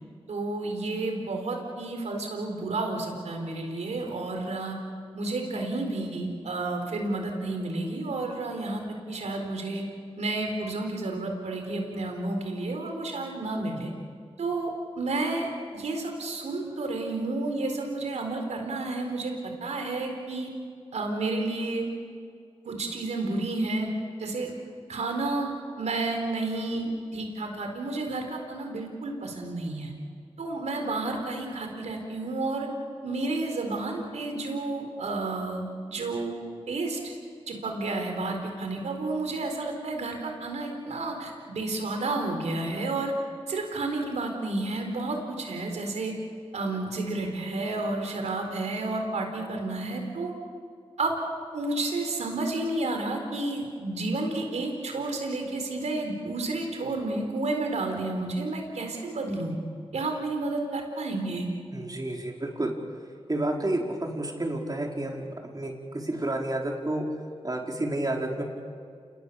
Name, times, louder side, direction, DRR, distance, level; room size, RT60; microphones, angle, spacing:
voice 1, 0.3-4.8 5.1-8.8 9.1-9.8 10.2-13.9 14.4-14.7 15.0-15.5 15.7-20.5 20.9-21.9 22.6-23.9 24.2-24.5 24.9-29.9 30.4-32.7 33.0-36.4 36.7-37.1 37.5-43.1 43.5-46.1 46.5-50.3 51.0-51.1 51.5-59.5 59.9-61.5, right 2 dB, 90° right, 3 dB, 4.2 m, -31 dB
voice 2, 61.7-62.8 63.3-67.1 67.4-68.4, right 1 dB, 35° right, 0 dB, 4.7 m, -30 dB
28.5 x 20.5 x 6.9 m, 2.2 s
cardioid pair, 45°, 11 cm